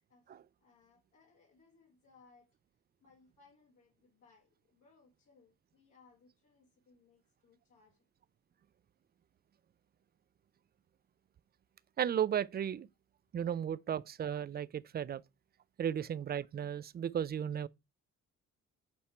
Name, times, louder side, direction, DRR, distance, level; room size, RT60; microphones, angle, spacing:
voice 1, 0.6-2.6 3.0-8.0, left 4 dB, 80° left, 2.2 m, -66 dB
voice 2, 12.0-12.9 13.3-15.2 15.8-17.7, right 9 dB, 35° right, 0.4 m, -35 dB
7.7 x 4.3 x 4.3 m
cardioid pair, 90°, 30 cm